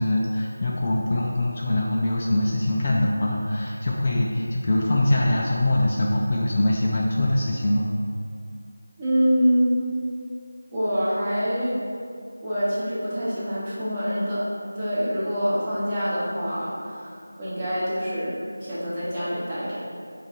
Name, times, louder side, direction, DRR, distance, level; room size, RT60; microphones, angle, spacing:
voice 1, 0.0-7.9, left 1 dB, 30° left, -3 dB, 0.4 m, -23 dB
voice 2, 9.0-9.8 10.7-11.8 12.4-14.4 14.8-19.8, equal, 20° right, -10 dB, 0.9 m, -25 dB
4.5 x 2.6 x 4.1 m, 2.3 s
figure-of-eight pair, 175°, 0 cm